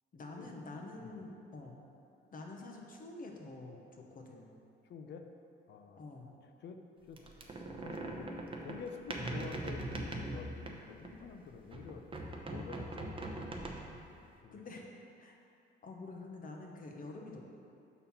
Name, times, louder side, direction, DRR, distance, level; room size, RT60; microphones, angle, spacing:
voice 1, 0.1-1.8 2.3-4.6 6.0-6.3 14.5-14.8 15.2-15.4 15.8-17.4, left 2 dB, 45° left, 1 dB, 1.0 m, -47 dB
voice 2, 4.8-5.2 5.7-6.1 6.4-6.8 7.1-8.3 8.6-12.0 12.5-13.4 14.2-14.6, left 5 dB, 60° left, 5 dB, 0.6 m, -49 dB
sound 1, 7.2-11.3 11.7-14.1, right 1 dB, 25° right, 0.8 m, -41 dB
5.7 x 4.2 x 5.6 m, 2.7 s
cardioid pair, 90°, 20 cm